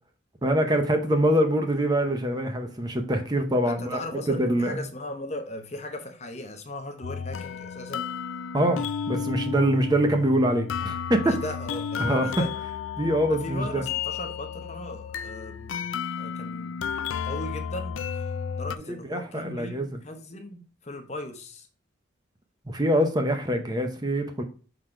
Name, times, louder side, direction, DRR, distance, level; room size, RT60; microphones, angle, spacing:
voice 1, 0.4-4.0 4.4-4.8 8.5-11.4 12.0-12.3 13.0-13.8 19.1-19.9 22.7-24.4, right 1 dB, 20° right, 0.7 m, -24 dB
voice 2, 3.6-8.1 11.2-12.5 13.3-15.9 16.2-18.0 18.6-21.7, left 1 dB, 35° left, 0.9 m, -38 dB
sound 1, 7.0-18.8, left 7 dB, 80° left, 0.4 m, -33 dB
6.4 x 4.0 x 4.4 m
head